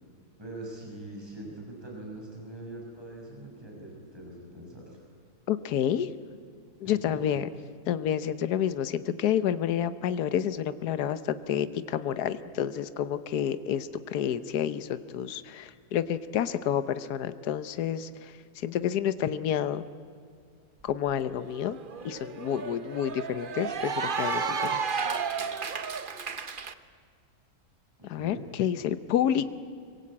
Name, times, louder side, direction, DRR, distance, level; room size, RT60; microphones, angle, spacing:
voice 1, 0.4-5.1 6.8-7.2 28.1-28.4, right 1 dB, 15° right, -1 dB, 6.2 m, -42 dB
voice 2, 5.5-6.1 6.8-7.5 7.9-19.8 20.8-21.8 22.0-24.8 25.6-25.8 28.0-29.5, left 9 dB, 80° left, 13 dB, 1.4 m, -29 dB
Cheering / Applause, 20.9-21.0 21.3-26.7, right 5 dB, 40° right, 1.0 m, -32 dB
25.5 x 23.0 x 8.6 m, 2.2 s
omnidirectional pair, 1.7 m